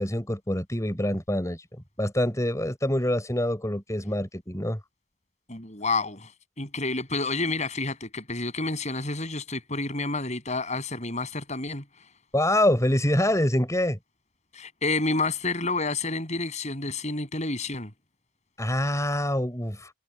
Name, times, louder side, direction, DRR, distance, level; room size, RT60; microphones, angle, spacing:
voice 1, 0.0-1.6 2.0-4.8 12.3-14.0 18.6-19.9, left 1 dB, 15° left, 5.9 m, -25 dB
voice 2, 5.5-6.3 6.6-11.8 14.5-17.9, left 3 dB, 35° left, 7.7 m, -29 dB
head